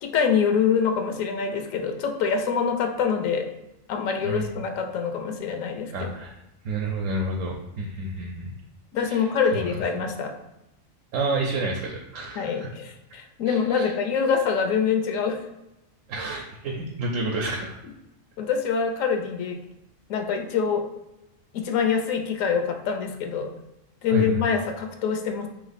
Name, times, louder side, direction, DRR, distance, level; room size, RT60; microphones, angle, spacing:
voice 1, 0.0-3.5 3.9-6.1 8.9-10.3 12.4-15.4 18.4-19.6 20.1-20.9 21.5-23.5 24.0-25.5, left 6 dB, 75° left, 5 dB, 0.9 m, -25 dB
voice 2, 5.9-6.3 6.6-8.5 9.1-9.2 9.5-9.8 11.1-12.7 13.5-13.9 16.1-17.8 24.1-24.4, right 2 dB, 75° right, 1 dB, 0.9 m, -29 dB
3.4 x 3.0 x 4.0 m, 0.92 s
omnidirectional pair, 1.4 m